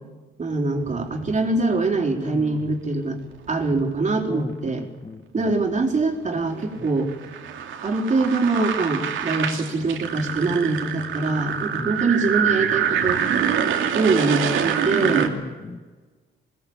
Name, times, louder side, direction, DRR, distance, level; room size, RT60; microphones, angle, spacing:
voice 1, 0.4-3.2 3.5-4.9 5.3-7.1 7.8-13.2 13.9-15.3, right 3 dB, 35° right, 1 dB, 4.1 m, -23 dB
sound 1, 0.7-1.8 3.3-4.0 5.8-15.3, right 8 dB, 80° right, 2.7 m, -26 dB
voice 2, 2.2-2.7 4.2-5.5 6.8-6.9 11.7-12.0 15.0-15.8, left 3 dB, 25° left, 10 dB, 1.3 m, -36 dB
22.5 x 18.5 x 8.8 m, 1.3 s
cardioid pair, 90°, 20 cm